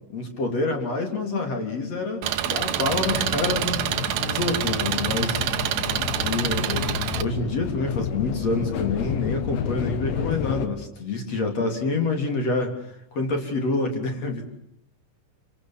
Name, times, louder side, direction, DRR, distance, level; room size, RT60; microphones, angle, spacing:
voice 1, 0.1-3.9 4.2-5.4 6.2-12.7 13.1-14.5, left 3 dB, 35° left, 4 dB, 3.9 m, -27 dB
Engine, 2.2-7.2, right 11 dB, 75° right, 2.1 m, -27 dB
sound 1, 2.9-10.7, left 10 dB, 90° left, 4.0 m, -30 dB
26.5 x 26.5 x 7.5 m, 0.75 s
omnidirectional pair, 5.7 m